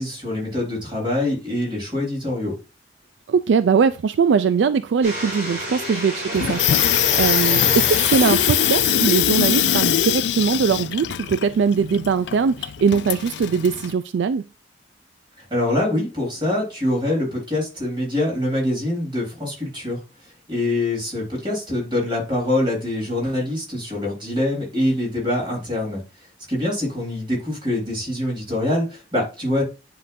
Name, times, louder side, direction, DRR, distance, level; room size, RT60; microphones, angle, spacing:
voice 1, 0.0-2.5 15.4-20.0 20.5-26.0 26.5-29.6, left 1 dB, 25° right, 3.8 m, -24 dB
voice 2, 3.3-14.5, right 6 dB, 70° right, 0.3 m, -21 dB
sound 1, 5.0-10.2, equal, 40° right, 3.4 m, -30 dB
Water tap faucet / Sink (filling or washing), 6.3-13.9, left 11 dB, 65° left, 0.3 m, -22 dB
9.7 x 3.8 x 2.6 m
head